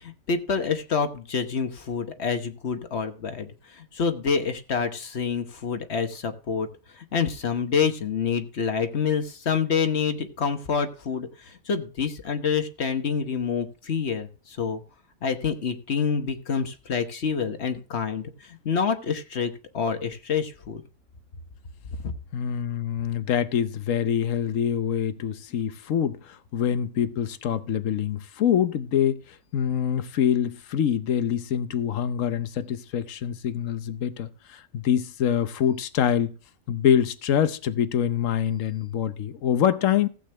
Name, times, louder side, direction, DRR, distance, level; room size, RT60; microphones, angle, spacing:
voice 1, 0.0-6.7 6.9-14.8 15.2-20.8 22.0-22.1, left 6 dB, 60° left, 1.3 m, -27 dB
voice 2, 22.3-29.2 29.5-36.3 36.7-40.1, left 9 dB, 80° left, 1.2 m, -25 dB
15.5 x 8.2 x 3.3 m
omnidirectional pair, 1.3 m